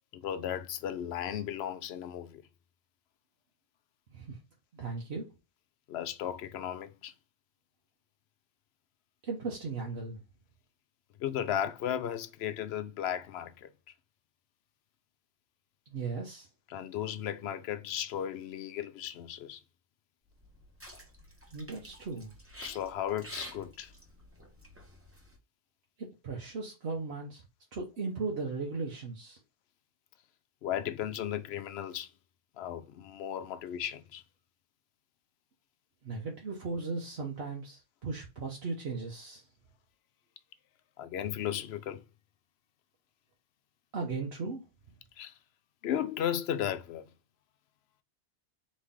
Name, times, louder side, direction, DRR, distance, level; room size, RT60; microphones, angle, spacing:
voice 1, 0.1-2.4 5.9-7.1 11.2-13.7 16.7-19.6 22.6-23.9 30.6-32.1 32.6-34.2 41.0-42.0 45.2-45.3 45.8-47.1, left 10 dB, 70° left, 0.8 m, -35 dB
voice 2, 4.7-5.3 9.2-10.2 15.9-16.5 21.5-22.3 26.0-27.4 27.7-29.4 36.0-39.4 43.9-44.6, right 4 dB, 70° right, 1.1 m, -37 dB
sound 1, 20.3-25.4, equal, 15° right, 1.0 m, -50 dB
4.2 x 3.1 x 3.6 m
omnidirectional pair, 1.1 m